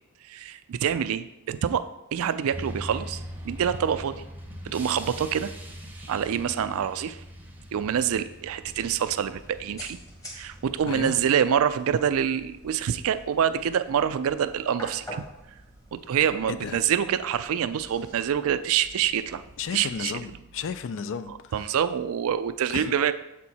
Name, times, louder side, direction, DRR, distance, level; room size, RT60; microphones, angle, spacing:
voice 1, 0.2-4.2 4.6-5.5 6.1-7.2 7.7-10.0 10.3-15.3 15.9-19.4 19.7-20.1 21.5-23.1, right 8 dB, 65° right, 12 dB, 0.4 m, -26 dB
sound 1, 2.5-11.3, equal, 10° right, 0.8 m, -42 dB
sound 2, 8.6-20.1, equal, 15° left, 1.1 m, -47 dB
voice 2, 10.8-11.2 16.5-16.8 19.6-21.7 22.7-22.9, left 6 dB, 60° left, 12 dB, 0.4 m, -34 dB
7.3 x 4.5 x 4.1 m, 0.88 s
head